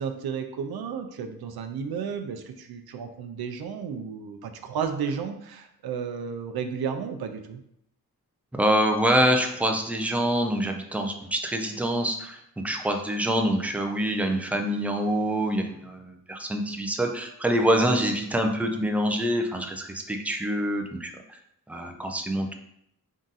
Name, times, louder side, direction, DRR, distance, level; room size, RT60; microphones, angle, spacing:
voice 1, 0.0-7.6, right 6 dB, 85° right, 7 dB, 0.5 m, -33 dB
voice 2, 8.6-21.4 21.7-22.5, equal, 5° right, 4 dB, 0.3 m, -26 dB
3.6 x 2.6 x 3.9 m, 0.75 s
wide cardioid pair, 145°, 36 cm